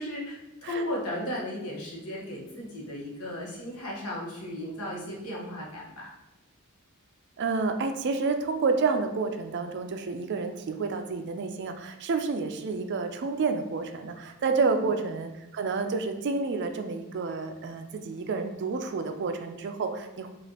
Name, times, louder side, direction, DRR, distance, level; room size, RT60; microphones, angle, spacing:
voice 1, 0.0-6.1 14.6-14.8, left 1 dB, 80° left, -4 dB, 1.2 m, -35 dB
voice 2, 7.4-20.3, right 4 dB, 55° right, 6 dB, 0.4 m, -29 dB
4.9 x 2.5 x 2.8 m, 0.98 s
head